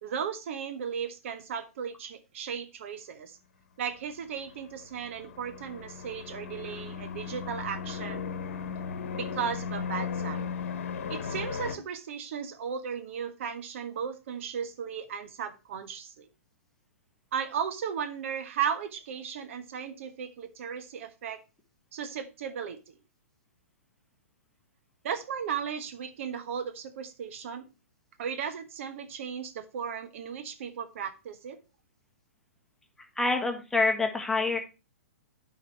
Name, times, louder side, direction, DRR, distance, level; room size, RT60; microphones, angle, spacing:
voice 1, 0.0-3.4 3.8-8.3 9.2-10.5 11.1-16.3 17.3-21.4 21.9-22.9 25.0-27.7 28.2-31.6, right 7 dB, 60° right, 10 dB, 1.0 m, -36 dB
sound 1, 4.4-11.8, left 6 dB, 60° left, 1.2 m, -36 dB
voice 2, 33.2-34.6, left 3 dB, 5° left, 3 dB, 1.4 m, -26 dB
9.6 x 4.8 x 4.4 m, 0.29 s
hypercardioid pair, 125°, 8 cm